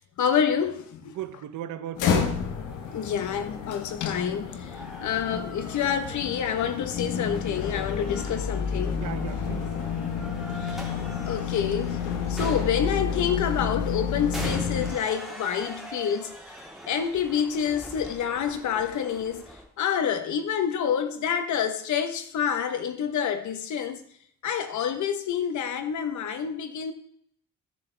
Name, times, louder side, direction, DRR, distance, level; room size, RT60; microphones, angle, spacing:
voice 1, 0.2-1.1 2.9-9.0 10.6-10.9 11.3-12.0 12.3-16.4 16.9-19.5 19.8-24.0 24.4-26.9, left 8 dB, 70° left, 1.2 m, -28 dB
voice 2, 1.0-2.4 8.9-9.7, right 11 dB, 80° right, 0.9 m, -36 dB
sound 1, 1.9-14.9, left 6 dB, 90° left, 1.3 m, -30 dB
sound 2, 2.6-19.6, equal, ahead, 3.6 m, -43 dB
15.0 x 6.7 x 3.5 m
cardioid pair, 90°, 30 cm